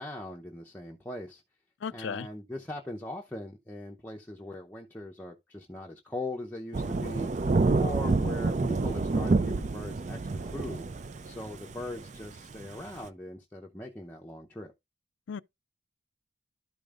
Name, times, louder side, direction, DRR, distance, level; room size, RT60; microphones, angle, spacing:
voice 1, 0.0-1.4 1.9-7.3 7.8-10.8 11.2-14.7, left 1 dB, 10° left, 0.7 m, -40 dB
voice 2, 1.8-2.3 15.3-15.4, left 6 dB, 65° left, 0.4 m, -35 dB
Thunder / Rain, 6.7-13.1, right 3 dB, 35° right, 0.4 m, -28 dB
12.5 x 5.2 x 2.4 m
head